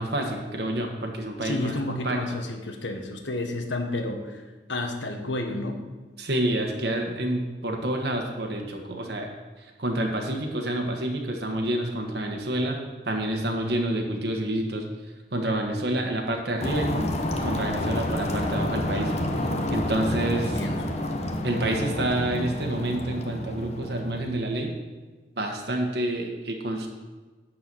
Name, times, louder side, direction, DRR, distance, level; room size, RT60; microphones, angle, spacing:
voice 1, 0.0-2.2 6.2-9.3 9.6-12.8 13.1-14.8 15.3-17.1 17.4-19.1 19.7-20.6 21.4-24.7 25.4-26.9, right 1 dB, 60° right, 2 dB, 1.4 m, -28 dB
voice 2, 1.4-4.4 4.7-5.8 20.0-20.8, left 2 dB, 85° left, 4 dB, 1.4 m, -31 dB
sound 1, 16.6-24.6, left 1 dB, 35° left, 1.0 m, -29 dB
11.5 x 4.7 x 7.6 m, 1.3 s
head